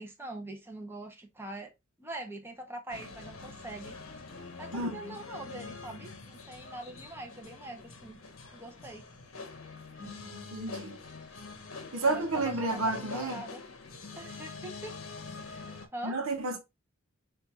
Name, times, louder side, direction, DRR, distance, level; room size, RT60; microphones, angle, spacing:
voice 1, 0.0-1.7 2.0-4.0 4.6-8.2 8.5-9.1 12.0-13.6 14.1-14.9 15.4-15.6 15.9-16.2, right 1 dB, 10° right, 0.8 m, -43 dB
sound 1, 2.9-15.9, left 3 dB, 75° left, 0.9 m, -45 dB
voice 2, 4.7-5.2 10.0-11.0 11.9-13.4 16.0-16.6, right 2 dB, 70° right, 0.9 m, -31 dB
4.4 x 2.5 x 3.7 m
head